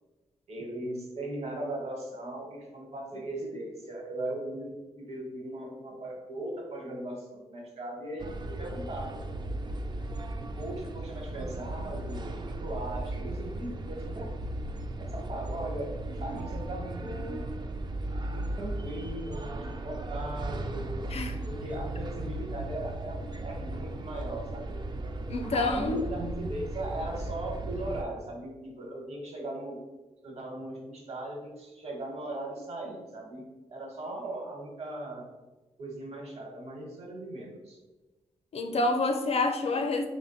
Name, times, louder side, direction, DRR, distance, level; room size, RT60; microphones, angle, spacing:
voice 1, 0.5-9.2 10.4-14.3 15.0-15.9 16.2-17.4 18.3-21.0 21.4-24.8 25.5-29.8 30.2-35.3 35.8-37.8, right 1 dB, 55° right, 0 dB, 1.0 m, -38 dB
sound 1, 8.2-28.0, right 1 dB, 35° right, 0.3 m, -36 dB
voice 2, 25.3-26.0 38.5-40.1, left 2 dB, 55° left, 5 dB, 0.5 m, -27 dB
3.3 x 2.1 x 4.0 m, 1.1 s
cardioid pair, 55°, 12 cm